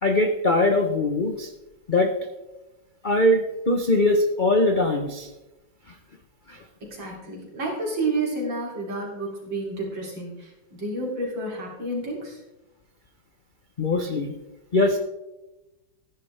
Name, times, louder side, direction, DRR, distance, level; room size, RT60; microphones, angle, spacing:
voice 1, 0.0-1.5 1.9-2.1 3.0-5.3 6.5-6.6 13.8-14.3 14.7-15.0, left 1 dB, 55° left, 4 dB, 0.5 m, -21 dB
voice 2, 6.8-12.4, right 2 dB, 65° right, -2 dB, 3.8 m, -30 dB
14.0 x 10.5 x 3.3 m, 0.99 s
omnidirectional pair, 2.2 m